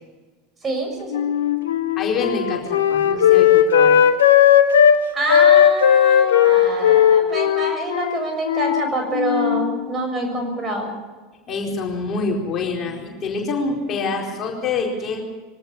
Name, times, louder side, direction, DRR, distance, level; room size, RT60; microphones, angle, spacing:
voice 1, 0.6-1.2 5.1-11.0, right 1 dB, 25° right, 4 dB, 6.9 m, -26 dB
Wind instrument woodwind instrument, 1.1-5.0 5.3-8.9 9.1-9.7, left 9 dB, 70° left, 1.4 m, -16 dB
voice 2, 2.0-4.0 11.5-15.2, left 4 dB, 35° left, 0 dB, 4.4 m, -26 dB
23.0 x 18.5 x 7.1 m, 1.3 s
figure-of-eight pair, 80°, 0 cm